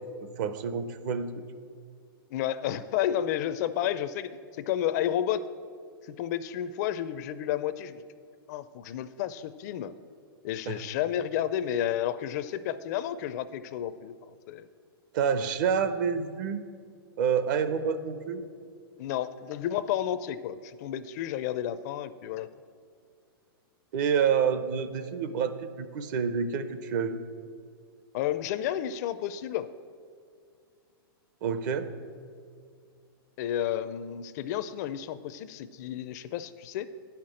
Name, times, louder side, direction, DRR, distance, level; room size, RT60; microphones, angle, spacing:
voice 1, 0.4-1.3 10.7-10.8 15.1-16.6 17.2-18.4 23.9-27.2 31.4-31.9, right 7 dB, 50° right, 11 dB, 0.7 m, -28 dB
voice 2, 2.3-5.5 6.2-8.0 8.5-9.9 10.4-14.1 14.5-14.7 19.0-22.5 28.1-29.7 33.4-36.9, left 11 dB, 45° left, 14 dB, 0.4 m, -31 dB
9.2 x 5.8 x 7.6 m, 2.2 s
hypercardioid pair, 150°, 13 cm